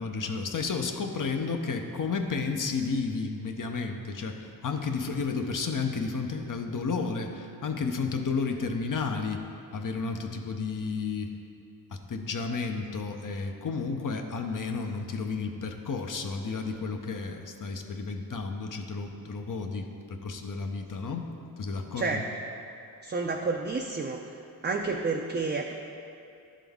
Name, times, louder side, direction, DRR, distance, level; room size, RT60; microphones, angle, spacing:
voice 1, 0.0-9.4 9.7-11.3 12.1-21.3 21.6-22.3, left 4 dB, 55° left, 4 dB, 0.7 m, -32 dB
voice 2, 23.0-24.2 24.6-25.7, right 4 dB, 30° right, 2 dB, 0.4 m, -30 dB
11.0 x 3.8 x 3.5 m, 2.6 s
cardioid pair, 55°, 39 cm